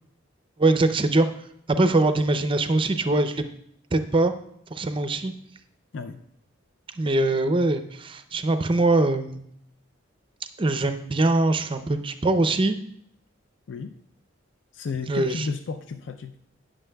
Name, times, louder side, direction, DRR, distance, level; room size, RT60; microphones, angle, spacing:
voice 1, 0.6-1.3 1.7-3.4 3.9-4.3 4.7-5.3 7.0-9.4 10.6-12.8 15.1-15.5, right 2 dB, 25° right, 9 dB, 0.5 m, -22 dB
voice 2, 14.7-16.3, left 4 dB, 65° left, 7 dB, 0.4 m, -33 dB
16.5 x 6.3 x 2.3 m, 0.70 s
head